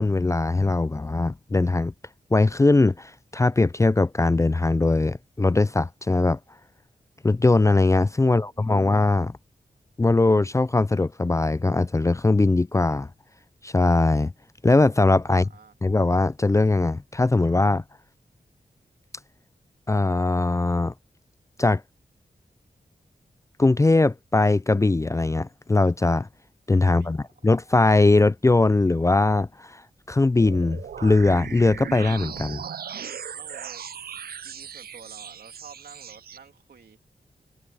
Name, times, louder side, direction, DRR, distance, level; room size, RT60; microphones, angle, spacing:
voice 1, 0.0-1.9 2.3-6.4 7.2-9.4 10.0-13.1 13.6-14.3 14.6-15.5 15.8-17.8 19.9-20.9 21.6-21.8 23.6-26.3 26.7-29.8 30.1-32.6, left 2 dB, 20° left, 0.3 m, -20 dB
voice 2, 8.2-8.8 15.3-15.7 26.8-27.2 33.3-33.9 34.4-37.0, right 6 dB, 90° right, 2.8 m, -50 dB
sound 1, 30.4-36.4, right 8 dB, 75° right, 0.5 m, -38 dB
wide cardioid pair, 75°, 16 cm